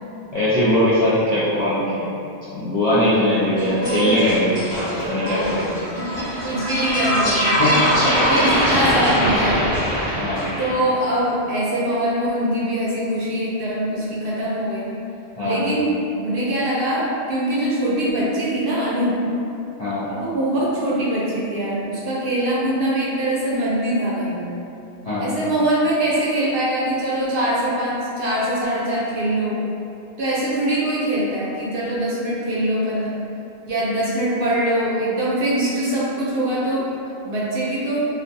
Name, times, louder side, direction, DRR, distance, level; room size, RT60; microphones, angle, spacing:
voice 1, 0.3-2.1 2.5-5.8 7.2-7.3 7.6-8.3 8.6-8.7 10.2-10.5 15.4-15.6 19.8-20.1 25.0-25.3, left 1 dB, 50° left, -11 dB, 0.4 m, -21 dB
sound 1, 3.6-10.7, equal, 75° left, 1.1 m, -22 dB
voice 2, 3.6-4.2 5.1-5.6 6.0-7.9 8.3-9.7 10.0-10.2 10.6-14.9 15.4-19.2 20.1-24.5 25.2-29.6 30.2-33.1 33.6-36.9 37.2-38.1, right 1 dB, 65° right, -6 dB, 0.7 m, -23 dB
2.4 x 2.3 x 2.6 m, 2.6 s
omnidirectional pair, 1.1 m